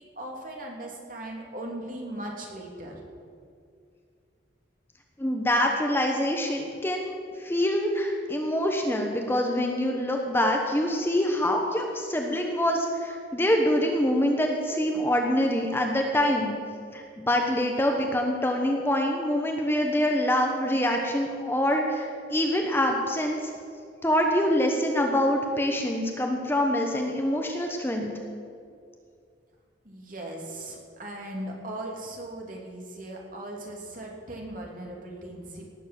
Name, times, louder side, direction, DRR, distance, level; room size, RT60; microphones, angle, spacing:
voice 1, 0.0-3.0 29.8-35.7, right 1 dB, 45° right, 0 dB, 2.6 m, -38 dB
voice 2, 5.2-16.6 16.9-23.5 24.0-28.1, left 1 dB, 10° left, 2 dB, 1.1 m, -25 dB
18.5 x 7.5 x 7.5 m, 2.3 s
head